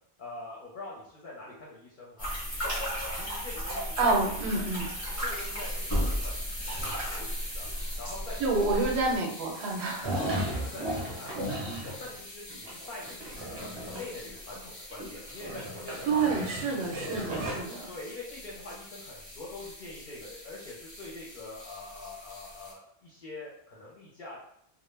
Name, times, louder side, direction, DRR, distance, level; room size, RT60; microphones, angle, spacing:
voice 1, 0.2-2.3 3.1-4.3 5.0-6.5 6.9-7.7 8.0-8.7 10.1-11.5 11.8-16.2 17.9-24.4, left 2 dB, 55° left, -5 dB, 0.7 m, -44 dB
sound 1, 2.2-9.2, equal, 15° left, 0.8 m, -33 dB
voice 2, 4.0-4.9 8.4-10.1 16.0-17.9, right 3 dB, 75° right, -1 dB, 0.9 m, -28 dB
sound 2, 5.1-22.7, left 1 dB, 30° left, 0.3 m, -46 dB
sound 3, 10.0-12.2 12.5-14.6 14.9-17.6, right 1 dB, 30° right, 0.6 m, -35 dB
2.1 x 2.1 x 3.1 m, 0.71 s
omnidirectional pair, 1.1 m